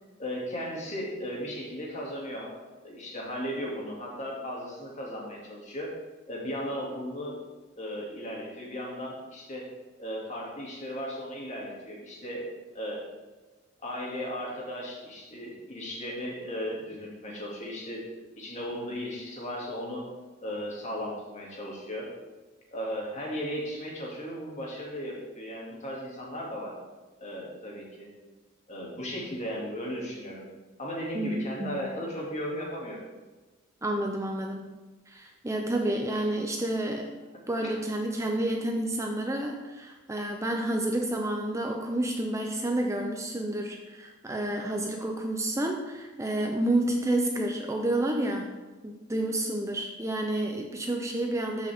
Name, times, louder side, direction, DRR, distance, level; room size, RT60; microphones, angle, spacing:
voice 1, 0.2-5.9 6.3-7.4 7.8-9.7 10.0-12.5 12.7-13.0 13.8-18.0 18.4-20.0 20.4-22.1 22.7-26.7 27.2-28.1 28.7-30.4 30.8-33.0 36.1-36.3 37.6-37.8, equal, 35° left, -3 dB, 2.5 m, -36 dB
voice 2, 31.1-31.9 33.8-34.7 35.1-37.1 37.5-48.5 48.8-51.7, right 1 dB, 15° right, 2 dB, 0.6 m, -30 dB
13.5 x 5.9 x 3.6 m, 1.2 s
head